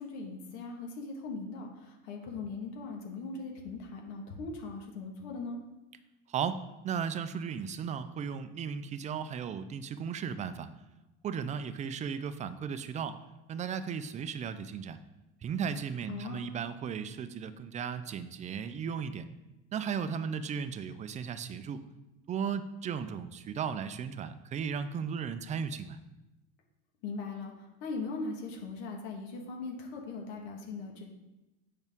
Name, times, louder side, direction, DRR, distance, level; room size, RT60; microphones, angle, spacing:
voice 1, 0.0-5.6 16.1-16.5 27.0-31.1, left 3 dB, 80° left, 0 dB, 1.5 m, -40 dB
voice 2, 6.8-10.7 11.2-13.2 13.5-15.0 15.4-19.3 19.7-21.8 22.3-26.0, right 7 dB, 25° right, 12 dB, 0.3 m, -35 dB
8.1 x 5.9 x 3.5 m, 1.0 s
cardioid pair, 145°, 33 cm